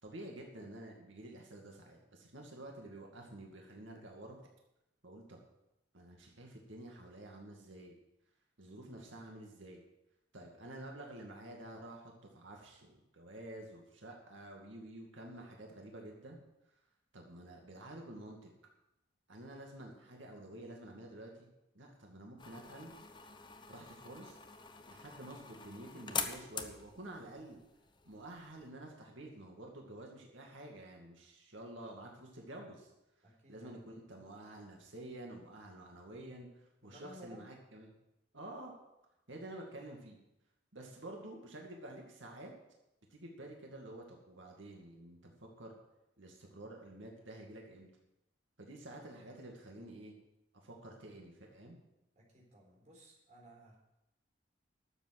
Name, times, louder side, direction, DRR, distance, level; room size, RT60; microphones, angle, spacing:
voice 1, 0.0-4.4 5.0-5.4 5.9-7.9 8.6-9.8 10.3-16.4 17.1-18.5 19.3-21.5 21.7-22.9 23.7-24.4 24.9-27.6 28.0-32.9 33.5-37.9 38.3-38.7 39.3-40.2 40.7-42.5 43.1-45.3 45.6-45.7 46.2-47.9 48.6-50.1 50.6-51.8, right 1 dB, 80° right, 0 dB, 2.2 m, -50 dB
sound 1, 22.4-28.7, left 6 dB, 25° left, 0.8 m, -45 dB
voice 2, 33.2-33.8 36.8-37.5 40.8-40.9 52.1-53.8, equal, 40° right, -2 dB, 4.1 m, -56 dB
12.0 x 7.6 x 7.7 m, 0.90 s
head